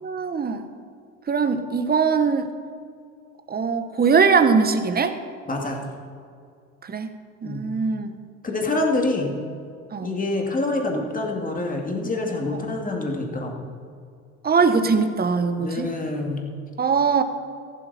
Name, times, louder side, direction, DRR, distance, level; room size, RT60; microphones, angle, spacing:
voice 1, 0.0-0.7 1.3-2.5 3.5-5.2 6.8-7.1 7.4-8.1 9.9-10.1 14.4-15.9 16.8-17.2, right 5 dB, 25° right, 9 dB, 1.1 m, -21 dB
voice 2, 5.5-5.8 7.4-7.7 8.4-9.4 10.0-13.7 15.6-16.5, left 2 dB, 20° left, 1 dB, 2.5 m, -26 dB
14.0 x 12.0 x 4.4 m, 2.3 s
hypercardioid pair, 80°, 39 cm